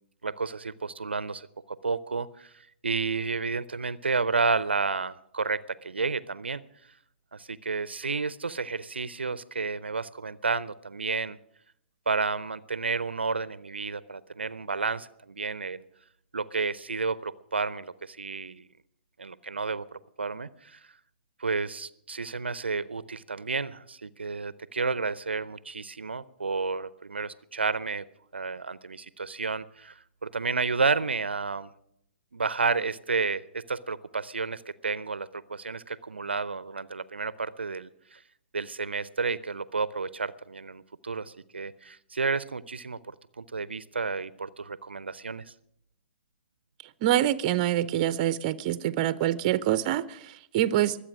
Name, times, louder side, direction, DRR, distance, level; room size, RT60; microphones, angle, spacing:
voice 1, 0.2-2.5 2.8-6.6 7.3-11.4 12.1-15.8 16.3-18.7 19.2-20.8 21.4-28.0 28.3-31.7 32.3-38.2 38.5-43.0 43.4-45.5, right 4 dB, 80° right, 0.6 m, -31 dB
voice 2, 47.0-51.0, right 13 dB, 40° right, 0.6 m, -25 dB
22.5 x 8.5 x 6.2 m
figure-of-eight pair, 120°, 6 cm